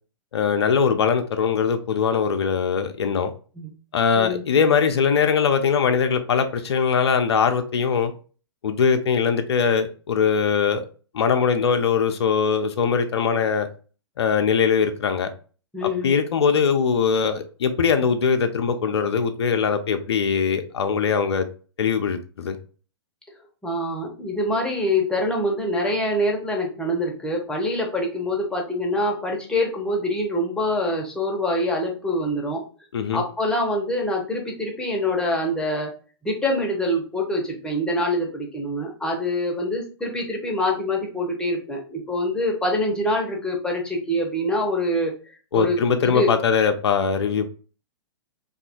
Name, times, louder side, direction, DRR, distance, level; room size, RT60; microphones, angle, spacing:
voice 1, 0.3-3.3 3.9-8.1 8.6-10.9 11.1-13.7 14.2-15.3 15.8-21.5 21.8-22.6 32.9-33.2 45.5-47.5, left 6 dB, 75° left, 0.4 m, -21 dB
voice 2, 15.7-16.2 23.6-32.6 33.1-35.9 36.2-45.1 45.5-46.3, left 1 dB, 5° left, 0.7 m, -25 dB
2.7 x 2.3 x 2.6 m
hypercardioid pair, 120°, 14 cm